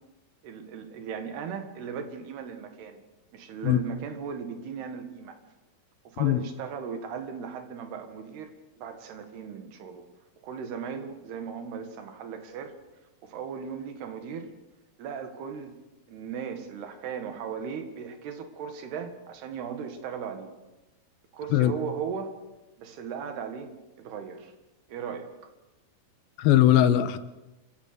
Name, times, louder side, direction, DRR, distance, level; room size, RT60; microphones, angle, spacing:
voice 1, 0.4-3.0 3.3-5.4 6.1-10.1 10.4-12.7 13.2-14.5 15.0-15.7 16.1-20.5 21.3-22.3 22.8-23.7 24.0-24.5 24.9-25.3, right 6 dB, 90° right, 7 dB, 4.0 m, -37 dB
voice 2, 26.4-27.2, left 12 dB, 80° left, 12 dB, 2.8 m, -20 dB
26.5 x 16.0 x 6.9 m, 1.0 s
omnidirectional pair, 4.5 m